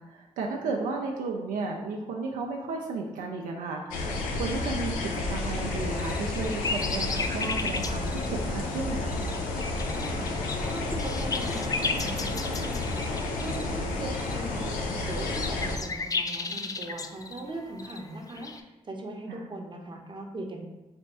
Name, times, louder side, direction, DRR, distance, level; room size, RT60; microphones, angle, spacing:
voice 1, 0.1-9.2 19.3-19.4, right 3 dB, 80° right, 0 dB, 0.4 m, -33 dB
sound 1, 3.9-15.8, left 2 dB, 90° left, 0.4 m, -31 dB
sound 2, 5.7-18.6, left 4 dB, 25° left, 0.3 m, -35 dB
voice 2, 10.0-18.5 18.8-20.7, right 2 dB, 35° right, 2 dB, 0.7 m, -40 dB
3.4 x 2.2 x 4.1 m, 1.0 s
supercardioid pair, 45°, 14 cm